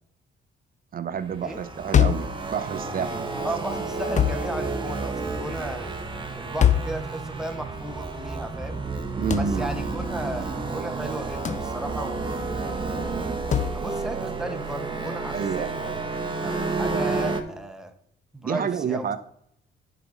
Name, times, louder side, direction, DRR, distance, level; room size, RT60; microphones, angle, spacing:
voice 1, 0.9-3.5 9.2-9.7 15.3-15.8 18.4-19.2, right 7 dB, 45° right, 13 dB, 0.7 m, -29 dB
sound 1, 1.2-17.4, right 3 dB, 25° right, 1.2 m, -31 dB
sound 2, 1.9-2.4 4.2-4.5 6.6-7.0 9.3-9.6 11.4-11.7 13.5-13.8, left 9 dB, 35° left, 0.6 m, -21 dB
voice 2, 3.4-5.9 6.4-8.8 9.3-12.4 13.7-16.1 16.4-17.9 18.3-19.1, right 1 dB, 5° right, 5 dB, 1.1 m, -35 dB
10.0 x 5.1 x 3.9 m, 0.72 s
cardioid pair, 90°, 20 cm